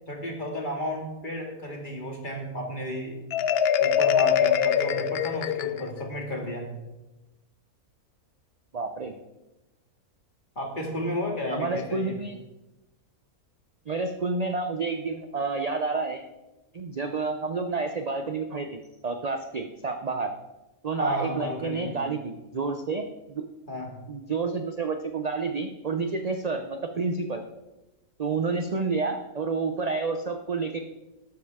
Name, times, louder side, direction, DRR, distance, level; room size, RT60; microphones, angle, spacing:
voice 1, 0.1-3.2 3.8-6.7 10.6-12.2 21.0-22.0 23.7-24.0 30.2-30.3, equal, 35° left, 1 dB, 2.2 m, -33 dB
Marimba xylophone, 3.3-6.1, left 8 dB, 65° left, 0.6 m, -23 dB
voice 2, 8.7-9.1 11.5-12.4 13.9-16.2 16.7-20.3 20.8-23.5 24.1-27.4 28.2-30.8, right 4 dB, 45° right, 6 dB, 0.5 m, -29 dB
12.5 x 12.0 x 3.6 m, 1.0 s
omnidirectional pair, 1.6 m